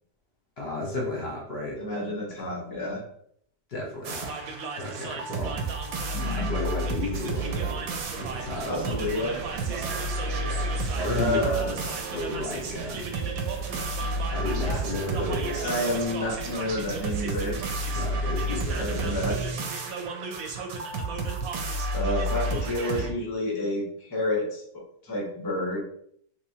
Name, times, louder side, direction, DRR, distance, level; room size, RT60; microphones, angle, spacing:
voice 1, 0.6-1.8 2.4-2.5 3.7-4.3 4.8-5.7 6.5-7.8 8.2-8.7 11.0-11.7 12.1-13.0 14.3-15.9 17.9-19.3, left 2 dB, 50° left, -2 dB, 0.8 m, -33 dB
voice 2, 1.8-3.0 6.1-6.5 8.6-9.4 11.1-11.7 12.2-12.3 15.6-17.6 18.8-19.4 21.9-25.8, left 1 dB, 30° left, -2 dB, 0.4 m, -29 dB
sound 1, 4.0-23.1, right 2 dB, 65° right, 1.0 m, -31 dB
sound 2, 7.1-19.3, right 4 dB, 90° right, 1.2 m, -39 dB
3.3 x 3.0 x 2.7 m, 0.66 s
omnidirectional pair, 1.8 m